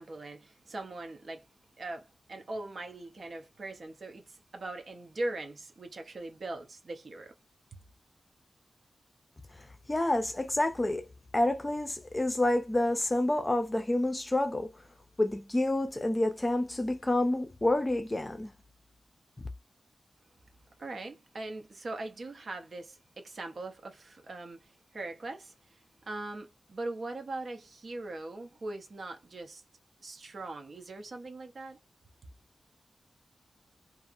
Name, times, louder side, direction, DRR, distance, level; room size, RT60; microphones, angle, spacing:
voice 1, 0.0-1.5 1.8-7.3 20.8-29.6 30.0-31.8, right 2 dB, 50° right, 0.6 m, -41 dB
voice 2, 9.9-11.1 11.3-14.7 15.2-18.5, left 1 dB, 15° left, 0.6 m, -28 dB
2.7 x 2.4 x 2.5 m
wide cardioid pair, 160°, 0 cm